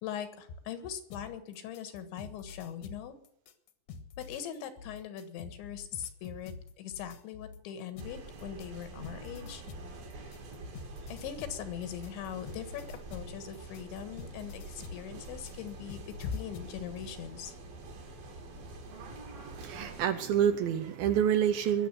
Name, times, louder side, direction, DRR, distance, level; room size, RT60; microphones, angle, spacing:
voice 1, 0.0-3.2 4.2-9.6 11.1-17.5, left 9 dB, 85° left, 10 dB, 3.9 m, -41 dB
sound 1, 1.1-7.6 8.0-16.8, left 5 dB, 65° left, 2.0 m, -47 dB
sound 2, 8.0-20.1, right 2 dB, 60° right, 4.4 m, -46 dB
voice 2, 19.4-21.9, right 9 dB, 75° right, 9 dB, 2.4 m, -28 dB
20.5 x 7.3 x 8.2 m, 0.70 s
omnidirectional pair, 5.1 m